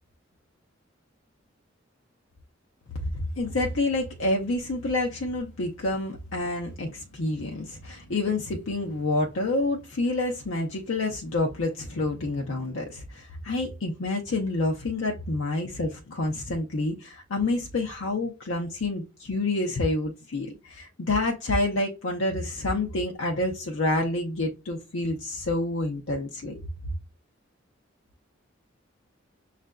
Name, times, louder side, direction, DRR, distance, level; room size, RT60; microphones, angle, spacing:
voice 1, 3.1-26.6, left 2 dB, 70° left, 0.6 m, -28 dB
6.3 x 2.5 x 2.2 m
head